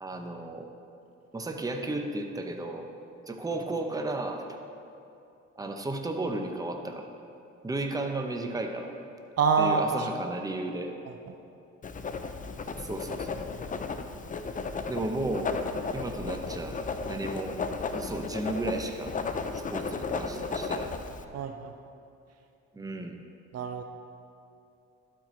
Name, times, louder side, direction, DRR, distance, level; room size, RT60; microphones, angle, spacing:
voice 1, 0.0-0.7 1.3-2.9 3.3-4.4 5.6-7.1 7.6-8.9 9.6-10.9 12.8-13.4 14.9-15.5 15.9-16.8 17.1-17.5 17.9-19.1 19.5-20.9 22.7-23.2, right 2 dB, 10° right, 4 dB, 0.7 m, -33 dB
voice 2, 9.4-10.1 21.3-21.7 23.5-23.8, right 5 dB, 55° right, 6 dB, 0.6 m, -26 dB
Writing, 11.8-21.2, left 4 dB, 25° left, 0.4 m, -34 dB
12.0 x 4.5 x 4.4 m, 2.7 s
cardioid pair, 90°, 30 cm